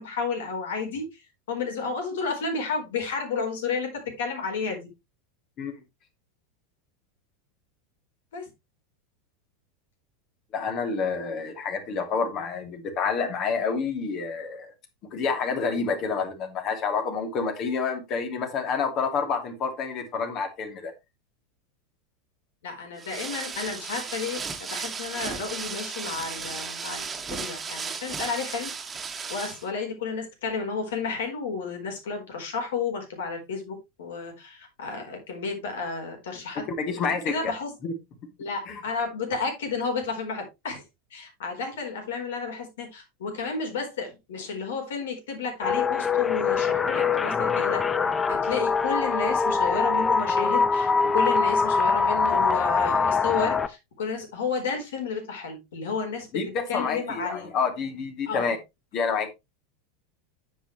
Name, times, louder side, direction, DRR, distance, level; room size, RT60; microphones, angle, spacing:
voice 1, 0.0-4.9 8.3-8.5 22.6-28.7 29.3-36.6 36.9-37.7 38.4-40.8 41.1-47.8 48.3-57.5 58.3-58.5, left 5 dB, 65° left, 4.3 m, -32 dB
voice 2, 10.5-14.7 15.1-20.9 36.7-37.5 37.8-37.9 38.7-38.8 56.3-58.6 58.9-59.3, left 5 dB, 40° left, 2.8 m, -28 dB
sound 1, 23.0-29.7, right 5 dB, 20° right, 1.8 m, -35 dB
sound 2, 45.6-53.7, left 5 dB, 15° left, 0.8 m, -23 dB
9.9 x 8.0 x 3.2 m
figure-of-eight pair, 85°, 0 cm